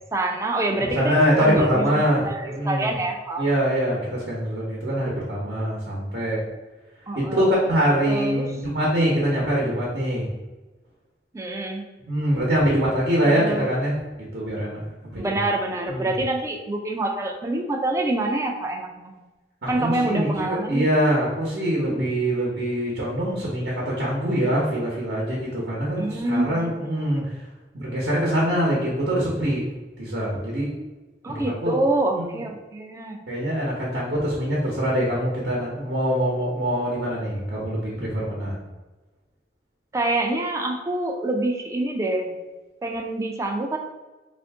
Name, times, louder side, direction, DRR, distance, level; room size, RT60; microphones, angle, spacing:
voice 1, 0.1-3.5 7.1-7.6 8.1-8.5 11.3-11.8 13.2-13.8 15.2-19.2 19.7-20.8 26.0-26.7 31.2-33.2 39.9-42.3 42.8-43.8, right 2 dB, 15° right, 3 dB, 0.3 m, -26 dB
voice 2, 0.8-2.9 3.4-6.4 7.2-10.3 12.1-13.9 14.3-14.8 15.1-15.4 15.9-16.1 19.6-27.2 27.7-29.6 30.0-30.7 31.3-31.7 32.2-32.3 33.3-38.6, equal, 70° right, -4 dB, 0.9 m, -24 dB
3.5 x 2.5 x 3.4 m, 1.2 s
head